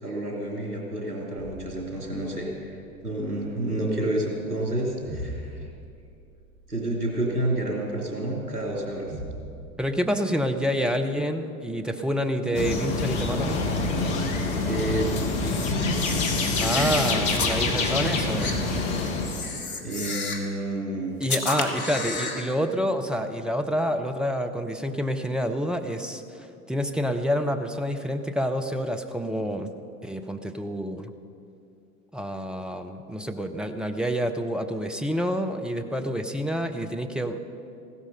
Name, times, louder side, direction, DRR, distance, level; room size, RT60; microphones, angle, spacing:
voice 1, 0.0-5.7 6.7-9.1 14.7-15.1 15.7-16.0 16.7-17.0 19.8-21.1, right 1 dB, 85° right, -2 dB, 3.2 m, -29 dB
sound 1, 1.4-9.5, right 1 dB, 45° right, 4.7 m, -43 dB
voice 2, 9.8-13.6 16.6-18.6 21.2-29.7 30.0-31.1 32.1-37.4, equal, ahead, 5 dB, 0.7 m, -28 dB
sound 2, 12.5-19.5, left 3 dB, 55° left, 1.8 m, -26 dB
Camera, 15.0-17.6 18.4-18.6 19.2-20.5 21.2-22.5, left 3 dB, 70° left, 1.7 m, -32 dB
16.0 x 12.5 x 5.6 m, 2.5 s
figure-of-eight pair, 85°, 44 cm